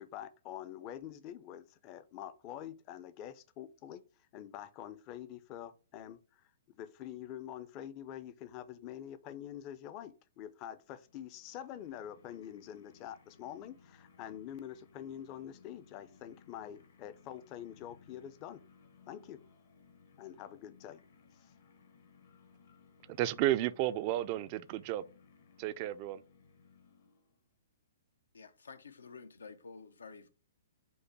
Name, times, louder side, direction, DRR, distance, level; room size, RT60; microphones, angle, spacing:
voice 1, 0.0-4.0 4.3-18.6 19.1-19.4 20.2-21.0 21.4-21.5, left 10 dB, 35° left, 0.5 m, -46 dB
sound 1, 10.8-27.5, left 5 dB, 65° left, 1.0 m, -62 dB
voice 2, 23.1-25.0 25.6-26.2, right 14 dB, 40° right, 0.3 m, -32 dB
voice 3, 28.3-30.3, left 5 dB, 90° left, 0.6 m, -50 dB
5.3 x 2.1 x 4.6 m
hypercardioid pair, 135°, 0 cm